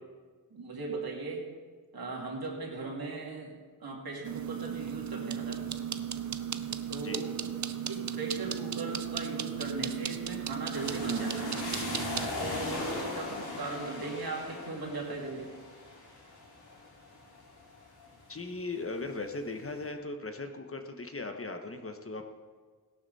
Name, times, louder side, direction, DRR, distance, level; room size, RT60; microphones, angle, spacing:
voice 1, 0.5-1.4 1.9-3.5 3.8-5.6 6.9-7.4 7.9-11.6 12.4-15.5, right 3 dB, 65° right, -1 dB, 2.7 m, -38 dB
sound 1, 4.2-12.3, right 8 dB, 50° right, 0.6 m, -36 dB
sound 2, 10.7-18.4 18.8-19.6, left 2 dB, 80° left, 3.2 m, -39 dB
voice 2, 13.3-13.6 18.3-22.3, left 3 dB, 35° left, 5 dB, 1.1 m, -38 dB
16.5 x 12.0 x 4.1 m, 1.5 s
wide cardioid pair, 95°, 38 cm